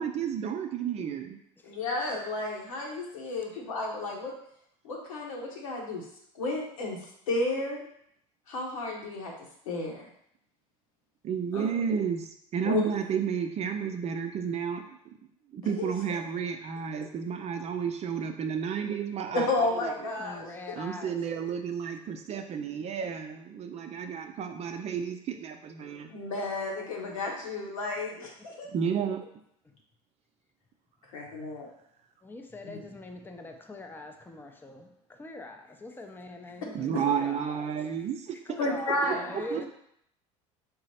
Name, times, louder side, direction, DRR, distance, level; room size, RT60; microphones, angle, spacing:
voice 1, 0.0-1.4 11.2-14.8 15.5-20.1 20.8-26.1 28.7-29.2 36.7-38.4 39.0-39.7, right 7 dB, 40° right, 6 dB, 0.5 m, -32 dB
voice 2, 1.6-4.3 4.8-6.0 6.3-7.0 7.3-7.8 8.5-9.3 9.7-10.1 11.5-11.7 12.6-12.8 15.8-15.9 19.3-20.5 26.1-28.7 31.1-31.7 38.6-39.4, left 2 dB, 85° left, -1 dB, 0.9 m, -32 dB
voice 3, 20.2-21.1 26.8-27.3 29.7-29.8 32.2-37.8 38.4-39.7, left 2 dB, 10° left, 4 dB, 0.5 m, -42 dB
3.8 x 2.0 x 4.1 m, 0.72 s
hypercardioid pair, 80°, 17 cm